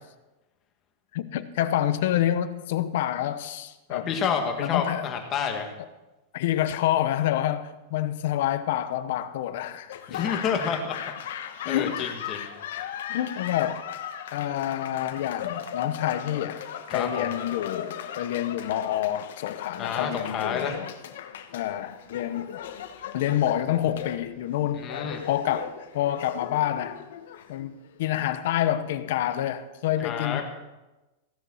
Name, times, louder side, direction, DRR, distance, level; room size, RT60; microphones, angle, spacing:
voice 1, 1.1-4.1 4.6-5.1 6.3-10.0 11.6-12.4 13.1-13.8 14.3-16.6 16.9-20.9 21.5-22.6 23.1-24.9 25.3-27.0 27.5-30.4, left 12 dB, 60° left, 0.8 m, -28 dB
voice 2, 3.9-5.7 10.1-11.0 11.7-12.5 12.8-12.9 16.9-17.3 19.8-20.7 24.8-25.2 30.0-30.4, left 6 dB, 25° left, 1.7 m, -29 dB
Laughter / Applause, 9.9-28.0, left 9 dB, 80° left, 1.3 m, -38 dB
16.0 x 7.2 x 7.2 m
supercardioid pair, 170°, 0 cm